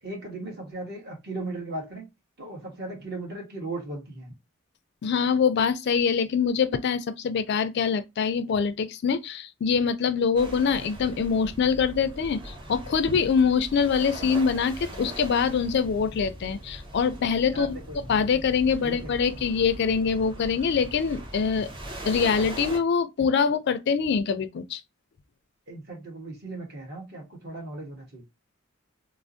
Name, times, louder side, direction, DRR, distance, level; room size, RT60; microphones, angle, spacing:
voice 1, 0.0-2.1 2.4-4.3 17.5-18.4 18.8-19.3 25.7-28.2, right 2 dB, 50° right, 1.2 m, -37 dB
voice 2, 5.0-21.7 22.1-24.8, left 6 dB, 55° left, 0.3 m, -24 dB
sound 1, 10.3-22.8, right 1 dB, 25° right, 0.9 m, -40 dB
3.3 x 2.0 x 2.5 m
head